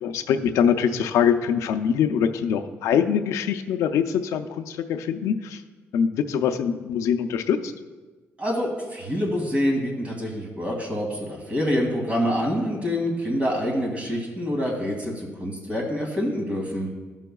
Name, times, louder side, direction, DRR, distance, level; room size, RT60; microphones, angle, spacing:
voice 1, 0.0-5.6 5.9-7.7, left 8 dB, 90° left, 8 dB, 0.5 m, -23 dB
voice 2, 8.4-16.9, equal, 25° right, -1 dB, 2.1 m, -26 dB
14.5 x 5.7 x 2.3 m, 1.3 s
cardioid pair, 115°, 5 cm